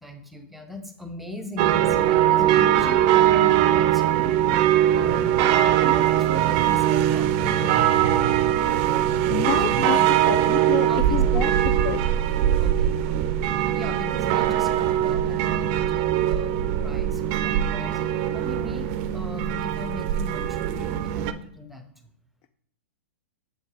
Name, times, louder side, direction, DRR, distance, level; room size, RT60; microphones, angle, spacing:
voice 1, 0.0-4.4 4.9-8.8 9.7-10.3 10.8-11.5 11.8-11.9 12.6-13.4 13.7-21.9, left 2 dB, ahead, 7 dB, 0.8 m, -39 dB
sound 1, 1.6-21.3, right 11 dB, 45° right, 0.4 m, -21 dB
sound 2, 6.8-18.8, left 2 dB, 85° left, 1.0 m, -43 dB
voice 2, 9.3-10.0 10.3-11.5 11.8-12.0, left 11 dB, 40° left, 11 dB, 0.3 m, -29 dB
6.9 x 4.3 x 3.3 m, 0.69 s
hypercardioid pair, 120°, 8 cm